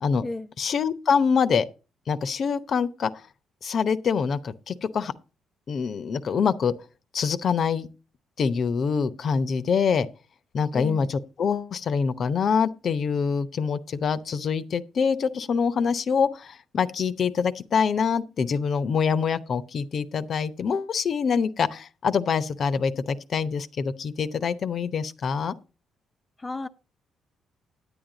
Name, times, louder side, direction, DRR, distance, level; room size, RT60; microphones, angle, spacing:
voice 1, 0.6-1.6 2.1-3.1 3.6-5.1 5.7-6.7 7.1-7.9 8.4-10.1 10.5-25.5, left 6 dB, 55° left, 0.8 m, -25 dB
voice 2, 10.7-11.1 26.4-26.7, left 2 dB, 20° left, 0.6 m, -33 dB
9.9 x 9.0 x 3.9 m
cardioid pair, 90°, 0 cm